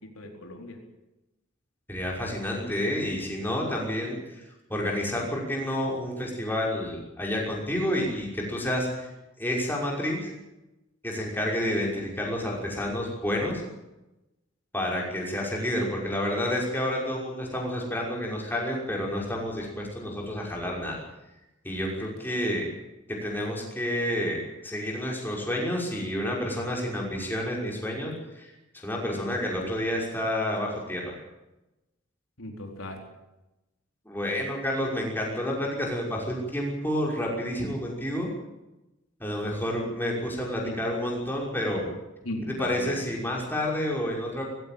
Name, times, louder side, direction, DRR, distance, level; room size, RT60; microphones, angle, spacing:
voice 1, 0.0-0.8 22.0-22.1 32.4-33.0 40.6-40.7 42.2-43.0, left 1 dB, 90° left, 2 dB, 4.3 m, -37 dB
voice 2, 1.9-4.4 4.7-9.1 9.4-10.3 11.0-13.6 14.7-21.0 21.6-22.7 23.1-28.5 28.8-31.2 34.1-38.3 39.2-41.9 42.6-44.4, left 1 dB, 10° left, -2 dB, 5.7 m, -29 dB
19.5 x 16.5 x 9.0 m, 0.97 s
head